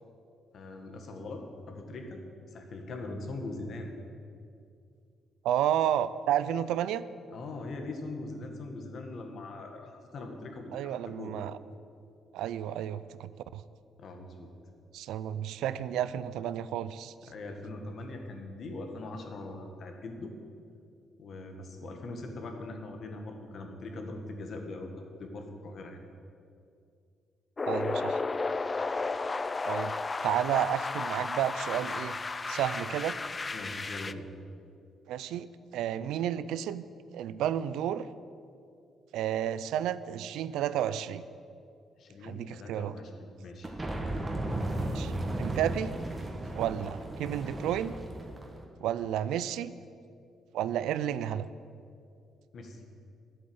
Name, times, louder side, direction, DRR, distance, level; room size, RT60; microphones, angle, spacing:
voice 1, 0.5-3.9 7.3-11.3 14.0-14.5 17.3-20.3 21.2-24.9 25.2-26.0 28.6-28.9 33.5-34.2 42.0-43.7 52.5-52.8, left 2 dB, 60° left, 4 dB, 1.7 m, -41 dB
voice 2, 5.4-7.0 10.7-11.6 12.3-13.6 14.9-17.1 27.6-28.2 29.6-29.9 30.2-32.2 32.5-33.2 35.1-35.5 35.7-36.8 37.1-38.1 39.1-41.2 42.2-42.9 44.7-45.1 45.4-45.9 46.5-47.9 48.8-49.7 50.5-51.5, right 10 dB, 85° right, 15 dB, 0.4 m, -31 dB
sound 1, 27.6-34.1, left 3 dB, 25° left, 0.4 m, -33 dB
sound 2, 43.6-48.6, right 1 dB, 25° right, 1.8 m, -35 dB
11.0 x 7.9 x 8.0 m, 2.4 s
cardioid pair, 90°, 0 cm